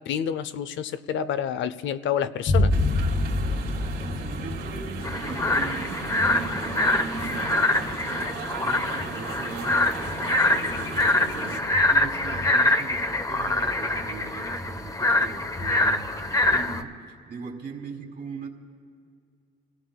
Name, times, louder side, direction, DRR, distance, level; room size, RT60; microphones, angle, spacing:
voice 1, 0.1-2.7, left 8 dB, 75° left, 13 dB, 0.5 m, -28 dB
sound 1, 2.5-9.9, left 2 dB, 50° left, 1.4 m, -28 dB
sound 2, 2.7-11.6, right 4 dB, 75° right, 2.6 m, -36 dB
voice 2, 4.1-18.5, right 5 dB, 60° right, 0 dB, 2.0 m, -40 dB
sound 3, 5.0-16.8, left 2 dB, 15° left, 0.8 m, -25 dB
29.0 x 17.5 x 2.2 m, 2.2 s
cardioid pair, 90°, 20 cm